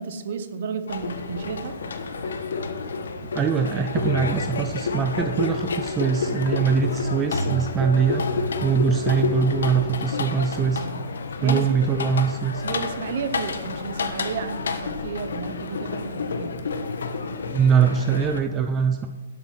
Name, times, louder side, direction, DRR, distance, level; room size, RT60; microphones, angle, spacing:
voice 1, 0.0-1.8 10.6-11.0 11.4-11.8 12.6-16.6, right 6 dB, 45° right, 10 dB, 1.0 m, -32 dB
sound 1, 0.9-18.4, left 4 dB, 85° left, 1.4 m, -29 dB
voice 2, 3.3-10.9 11.4-12.6 17.5-19.1, right 6 dB, 10° right, 5 dB, 0.4 m, -22 dB
12.0 x 8.0 x 5.7 m, 1.2 s
hypercardioid pair, 175°, 0 cm